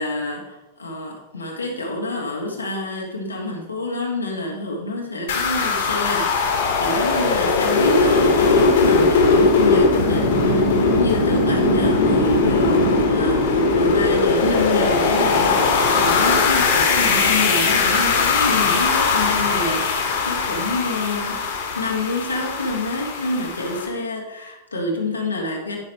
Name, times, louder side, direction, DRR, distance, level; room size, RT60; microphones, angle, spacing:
voice 1, 0.0-6.5 6.8-21.4 21.7-25.8, left 2 dB, 80° left, -1 dB, 1.9 m, -27 dB
sound 1, 5.3-23.9, left 3 dB, 60° left, 2.0 m, -19 dB
10.5 x 5.8 x 4.7 m, 1.0 s
figure-of-eight pair, 90°, 0 cm